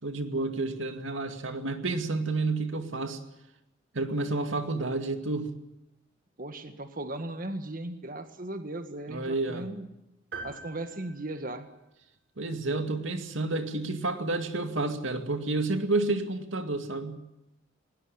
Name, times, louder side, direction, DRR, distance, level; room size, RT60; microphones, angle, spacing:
voice 1, 0.0-3.2 3.9-5.5 9.1-9.7 12.4-17.2, right 2 dB, 85° right, 7 dB, 2.3 m, -30 dB
voice 2, 6.4-9.9 10.4-11.7, right 1 dB, 45° right, 8 dB, 1.8 m, -37 dB
sound 1, 10.3-12.1, right 3 dB, 60° right, 7.0 m, -44 dB
20.0 x 19.5 x 10.0 m, 0.89 s
head